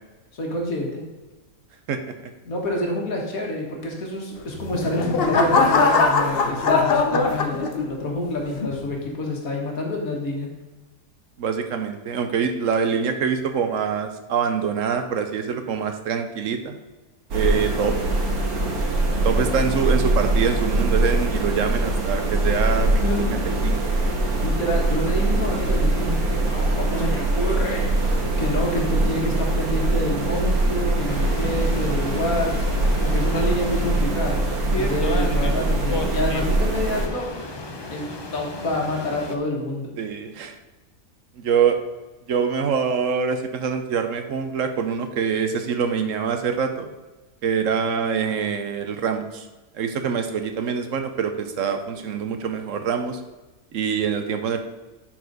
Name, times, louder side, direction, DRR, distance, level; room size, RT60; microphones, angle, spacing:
voice 1, 0.3-1.0 2.4-10.5 23.0-23.2 24.4-32.7 33.0-37.3 37.9-39.9, left 1 dB, 70° left, -1 dB, 2.0 m, -28 dB
sound 1, 4.5-8.1 8.6-9.0, left 4 dB, 50° left, 0.8 m, -21 dB
voice 2, 11.4-16.8 17.3-18.3 19.2-23.8 40.0-40.6 41.4-41.8 42.3-46.9 47.4-49.5 49.7-53.2 53.7-54.6, right 6 dB, 65° right, 7 dB, 1.0 m, -25 dB
sound 2, 17.3-37.1, right 2 dB, 85° right, 1.7 m, -22 dB
sound 3, 31.1-39.4, left 2 dB, 35° left, 0.4 m, -34 dB
11.0 x 4.5 x 4.0 m, 1.2 s
omnidirectional pair, 1.5 m